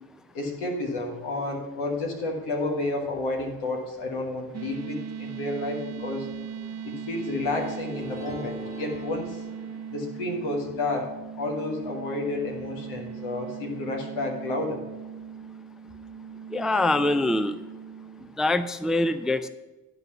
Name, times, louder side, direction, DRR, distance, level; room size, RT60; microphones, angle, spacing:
voice 1, 0.3-6.3 6.8-9.4 9.9-11.1 11.4-14.8, left 2 dB, 80° left, 1 dB, 1.5 m, -31 dB
sound 1, 4.5-18.4, right 7 dB, 40° right, 0.6 m, -39 dB
sound 2, 7.5-10.3, left 3 dB, 15° left, 1.9 m, -42 dB
voice 2, 16.5-17.6 18.4-19.5, left 2 dB, ahead, 13 dB, 0.4 m, -24 dB
11.0 x 4.0 x 6.8 m, 1.1 s
hypercardioid pair, 40°, 39 cm